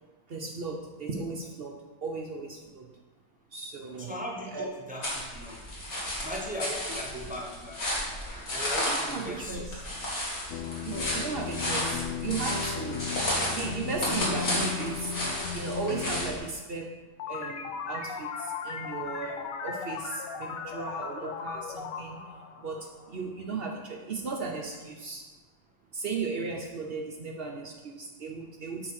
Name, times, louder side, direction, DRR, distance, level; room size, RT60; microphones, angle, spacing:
voice 1, 0.3-2.9 3.5-4.1 4.5-4.7 8.9-9.8 10.8-13.1 13.5-15.2 15.5-22.2 22.6-25.3 25.9-28.9, right 4 dB, 65° right, 1 dB, 0.6 m, -36 dB
voice 2, 4.0-5.0 5.3-5.6 6.2-7.8 8.5-9.7 10.5-10.6, equal, 10° right, -1 dB, 0.6 m, -38 dB
sound 1, 5.0-16.4, left 1 dB, 50° left, 2.3 m, -33 dB
sound 2, 10.5-16.4, left 8 dB, 70° left, 0.7 m, -36 dB
sound 3, 17.2-23.4, left 6 dB, 90° left, 1.4 m, -38 dB
8.0 x 3.9 x 6.2 m, 1.2 s
omnidirectional pair, 1.8 m